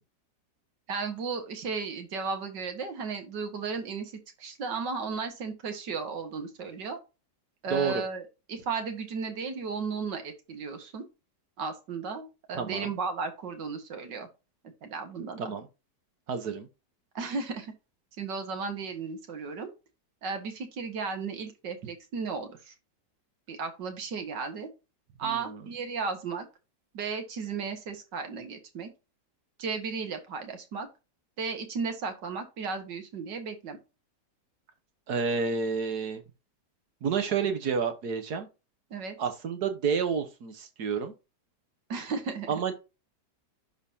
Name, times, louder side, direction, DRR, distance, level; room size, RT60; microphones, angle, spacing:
voice 1, 0.9-7.0 7.6-8.2 8.5-11.0 11.6-14.3 14.8-15.5 17.2-17.7 18.2-19.7 20.2-22.7 23.5-24.7 25.2-26.5 26.9-28.9 29.6-30.9 31.4-33.8 38.9-39.2 41.9-42.6, right 5 dB, 80° right, 2.1 m, -34 dB
voice 2, 12.5-12.9 15.4-15.7 16.3-16.7 25.2-25.6 35.1-36.2 37.0-38.5 39.2-41.1 42.5-42.7, right 6 dB, 65° right, 1.6 m, -29 dB
11.5 x 4.0 x 2.7 m
omnidirectional pair, 1.9 m